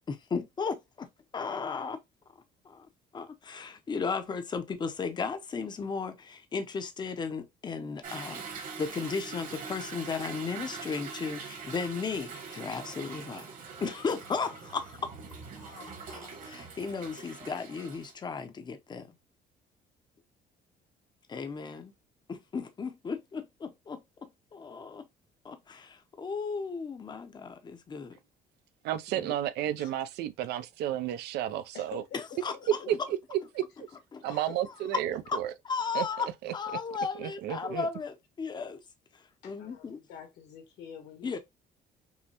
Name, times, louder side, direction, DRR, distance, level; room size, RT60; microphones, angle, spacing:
voice 1, 0.1-1.1 1.3-2.0 2.6-2.9 3.1-13.5 13.8-15.1 15.6-19.1 21.3-21.9 22.3-25.0 25.4-28.2 29.2-29.3 32.4-32.5 34.1-34.4 35.3-35.4 35.6-38.8 39.4-40.0 41.2-41.4, left 5 dB, 25° left, 0.6 m, -35 dB
Toilet flush / Drip / Trickle dribble, 8.0-18.1, right 5 dB, 50° right, 1.3 m, -43 dB
voice 2, 28.8-32.0 32.9-33.0 33.5-33.6 34.2-35.5 35.9-36.1 36.4-36.5 37.2-37.9, right 12 dB, 75° right, 0.5 m, -32 dB
voice 3, 31.7-32.9 34.3-34.6 39.4-41.4, left 7 dB, 80° left, 1.5 m, -48 dB
5.5 x 2.1 x 2.8 m
cardioid pair, 110°, 17 cm